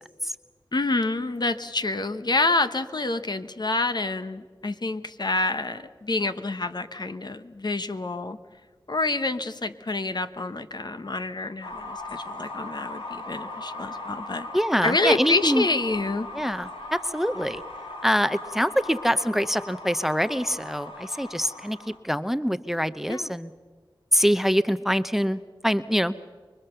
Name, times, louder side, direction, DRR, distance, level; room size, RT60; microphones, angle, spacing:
voice 1, 0.7-8.4 8.9-14.5 14.8-16.3 23.1-23.3, left 2 dB, 55° left, 10 dB, 1.1 m, -27 dB
sound 1, 11.6-22.0, left 2 dB, 85° left, 2.7 m, -38 dB
voice 2, 14.5-15.6 16.3-16.7 17.1-17.6 18.0-23.5 24.1-26.2, equal, 5° right, 13 dB, 0.7 m, -24 dB
24.5 x 23.0 x 6.8 m, 1.5 s
wide cardioid pair, 45°, 9 cm